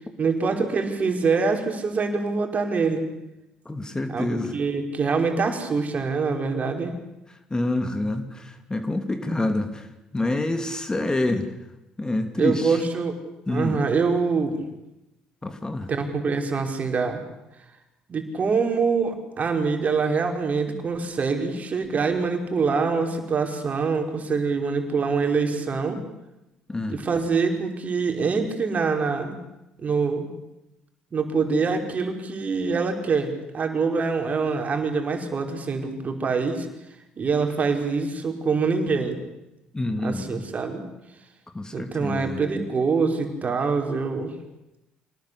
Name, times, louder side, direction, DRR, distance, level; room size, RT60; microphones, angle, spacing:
voice 1, 0.2-3.1 4.1-7.0 12.4-13.2 13.5-14.6 15.9-17.2 18.1-26.0 26.9-29.4 29.8-30.3 31.1-36.7 37.2-39.2 40.0-40.8 41.7-44.3, right 4 dB, 45° right, 4 dB, 5.0 m, -25 dB
voice 2, 3.6-4.6 7.5-9.9 10.1-11.5 12.0-12.8 13.5-13.8 15.4-15.9 20.7-20.8 26.7-27.0 39.7-40.5 41.5-42.4, left 2 dB, 20° left, 8 dB, 3.1 m, -27 dB
26.5 x 19.0 x 8.5 m, 0.94 s
hypercardioid pair, 55°, 4 cm